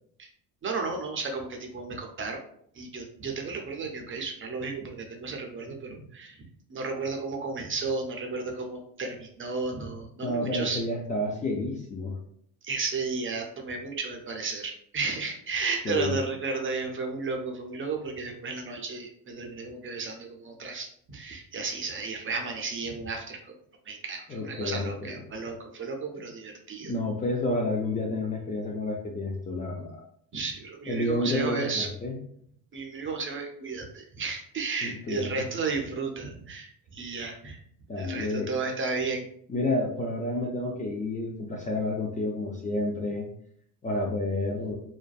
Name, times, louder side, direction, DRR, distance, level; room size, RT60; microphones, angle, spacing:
voice 1, 0.6-2.4 2.8-6.4 6.7-10.8 12.6-23.5 23.9-26.9 30.3-31.9 32.7-37.6 38.0-39.2, right 4 dB, 30° right, 3 dB, 0.5 m, -33 dB
voice 2, 10.2-12.2 15.8-16.2 24.3-25.2 26.8-30.0 30.9-32.2 34.8-35.3 37.9-38.5 39.5-43.3 43.8-44.8, left 2 dB, 20° left, -1 dB, 0.3 m, -30 dB
2.5 x 2.2 x 2.3 m, 0.66 s
supercardioid pair, 80°, 41 cm